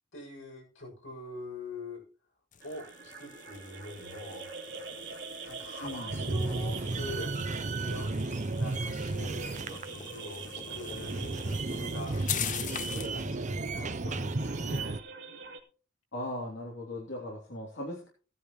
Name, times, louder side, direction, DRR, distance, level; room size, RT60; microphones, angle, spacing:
voice 1, 0.1-2.0 2.6-4.5 5.5-7.3 7.8-15.0, left 1 dB, 75° left, 0 dB, 7.2 m, -44 dB
sound 1, 2.5-13.2, left 10 dB, 40° left, 0.6 m, -43 dB
sound 2, 2.6-15.6, right 5 dB, 60° right, 2.8 m, -45 dB
voice 2, 5.8-6.2 16.1-18.1, left 1 dB, 60° left, -3 dB, 3.3 m, -38 dB
sound 3, 6.1-15.0, right 3 dB, 35° right, 0.7 m, -34 dB
16.5 x 10.0 x 3.1 m, 0.38 s
head